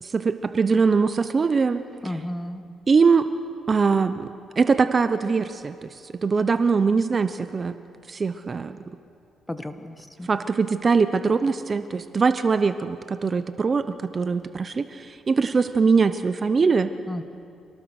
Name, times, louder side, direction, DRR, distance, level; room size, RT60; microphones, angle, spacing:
voice 1, 0.0-1.8 2.9-3.3 3.7-4.3 4.6-7.8 8.1-8.8 10.3-16.9, right 5 dB, 35° right, 11 dB, 0.8 m, -22 dB
voice 2, 2.0-2.7 9.5-10.3 17.1-17.2, left 1 dB, 10° left, 9 dB, 1.4 m, -33 dB
26.5 x 19.0 x 6.6 m, 2.4 s
cardioid pair, 90°, 0 cm